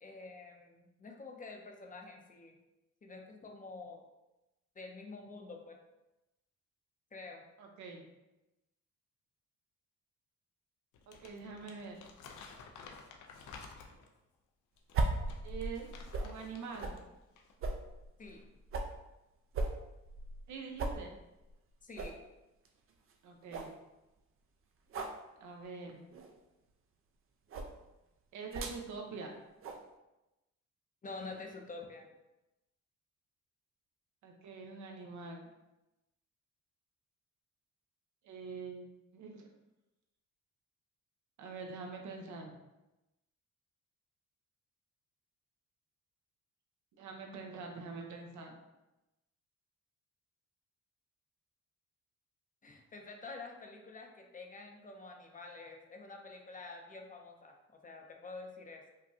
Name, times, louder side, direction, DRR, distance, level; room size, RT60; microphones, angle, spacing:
voice 1, 0.0-2.6 3.0-4.1 4.8-5.8 7.1-7.4 18.2-18.5 21.8-22.1 31.0-32.1 52.6-58.9, left 3 dB, 25° left, 2 dB, 0.6 m, -48 dB
voice 2, 7.6-8.0 11.1-12.0 15.4-16.9 20.5-21.1 23.2-23.7 25.4-26.0 28.3-29.3 34.2-35.4 38.2-39.5 41.4-42.5 47.0-48.5, right 4 dB, 75° right, 2 dB, 0.8 m, -45 dB
Crumpling crinkling, 10.9-14.2 14.8-17.0 17.3-17.5, left 5 dB, 75° left, 0.6 m, -53 dB
sound 1, 14.9-16.4 16.8-17.0 17.6-19.0 19.5-20.5 20.8-21.0 21.4-21.5 22.0-22.2 22.7-22.8 23.1-23.2 23.5-23.8 24.9-25.2 26.1-26.4 27.5-27.7 28.5-28.8 29.6-29.8, right 3 dB, 45° right, 0.5 m, -37 dB
5.0 x 2.2 x 2.8 m, 0.97 s
cardioid pair, 90°, 30 cm